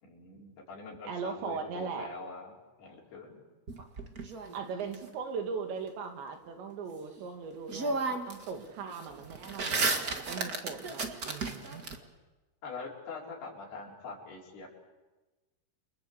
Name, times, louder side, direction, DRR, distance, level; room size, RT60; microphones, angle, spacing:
voice 1, 0.0-2.5 2.8-3.4 11.5-11.9 12.6-14.7, left 4 dB, 65° left, -2 dB, 6.6 m, -44 dB
voice 2, 1.0-2.1 4.5-11.9, right 5 dB, 85° right, 5 dB, 4.6 m, -39 dB
sound 1, 3.7-4.9 7.2-7.3 7.7-8.5 8.8-11.9, right 3 dB, 55° right, 0.9 m, -33 dB
29.5 x 24.5 x 8.0 m, 1.2 s
omnidirectional pair, 5.0 m